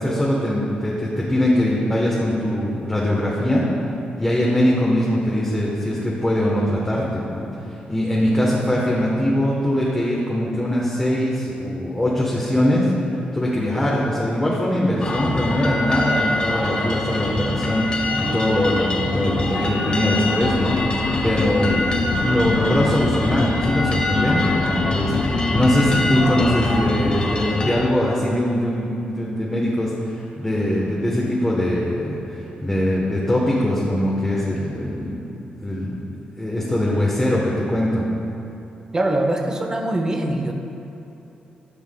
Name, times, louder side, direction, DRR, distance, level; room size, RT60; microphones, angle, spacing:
voice 1, 0.0-3.6 4.2-12.9 13.3-21.8 22.2-35.2 35.6-36.0 36.4-38.0, left 1 dB, 10° left, -5 dB, 1.0 m, -22 dB
sound 1, 15.0-27.8, left 1 dB, 30° left, 1.0 m, -24 dB
sound 2, 20.4-27.3, left 4 dB, 50° left, 0.4 m, -26 dB
voice 2, 38.9-40.5, right 1 dB, 25° right, 4 dB, 0.7 m, -22 dB
13.0 x 5.8 x 2.2 m, 2.9 s
cardioid pair, 110°, 3 cm